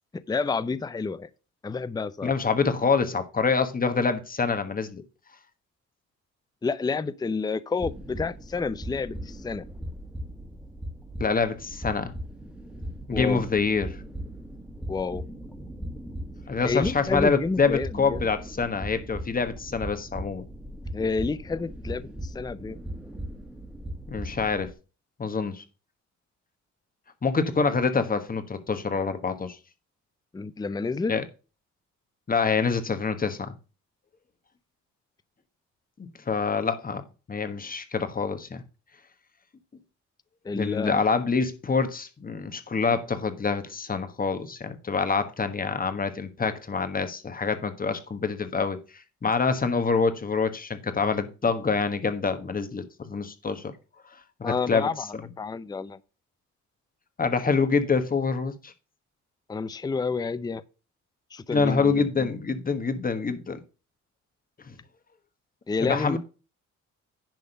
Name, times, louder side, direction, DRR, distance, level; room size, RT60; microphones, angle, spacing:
voice 1, 0.1-1.3 1.6-2.3 6.6-9.6 13.1-13.4 14.9-15.3 16.6-18.2 20.9-22.8 30.3-31.1 40.4-41.0 54.4-56.0 59.5-60.6 61.3-62.3 65.7-66.2, left 4 dB, 15° left, 0.5 m, -29 dB
voice 2, 2.2-5.0 11.2-12.1 13.1-14.0 16.5-20.5 24.1-24.7 25.2-25.6 27.2-29.6 31.1-31.2 32.3-33.5 36.3-37.0 37.3-38.6 40.5-53.7 54.4-55.2 57.2-58.7 61.5-63.6 64.7-64.8 65.8-66.2, left 4 dB, 30° left, 1.4 m, -26 dB
sound 1, 7.8-24.7, equal, 5° right, 1.6 m, -38 dB
10.5 x 3.6 x 6.8 m
cardioid pair, 90°, 30 cm